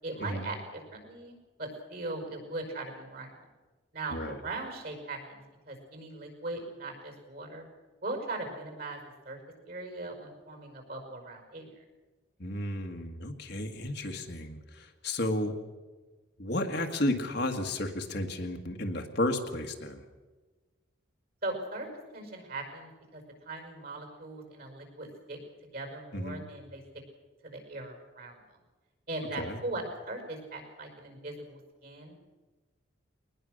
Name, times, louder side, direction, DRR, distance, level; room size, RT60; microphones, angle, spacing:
voice 1, 0.0-3.4 3.9-7.7 8.0-9.0 9.2-9.4 9.7-11.7 21.4-21.9 22.1-25.4 25.7-26.8 27.4-28.4 29.1-32.2, right 2 dB, 50° right, 4 dB, 5.5 m, -39 dB
voice 2, 12.4-15.6 16.4-20.0 26.1-26.4 29.4-29.6, left 1 dB, 55° left, 4 dB, 1.9 m, -32 dB
21.5 x 20.0 x 6.6 m, 1.3 s
head